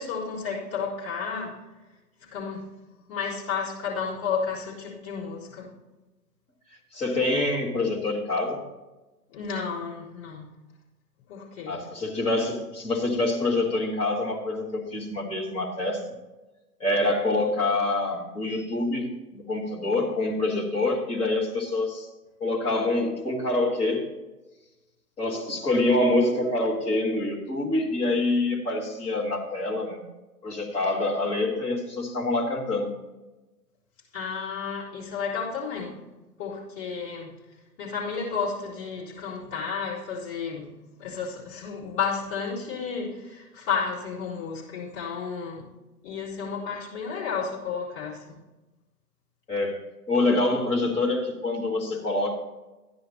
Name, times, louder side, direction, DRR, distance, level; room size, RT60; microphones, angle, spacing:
voice 1, 0.0-1.6 2.2-2.7 3.1-5.7 9.3-10.5 11.3-11.8 34.1-36.0 36.4-37.3 37.8-45.7 46.0-48.4, left 6 dB, 30° left, -8 dB, 3.9 m, -32 dB
voice 2, 6.9-8.6 11.7-16.0 16.8-22.1 22.4-24.1 25.2-30.0 30.4-32.9 49.5-52.4, left 2 dB, 10° left, -4 dB, 1.8 m, -26 dB
14.0 x 10.0 x 2.9 m, 1.1 s
figure-of-eight pair, 125°, 48 cm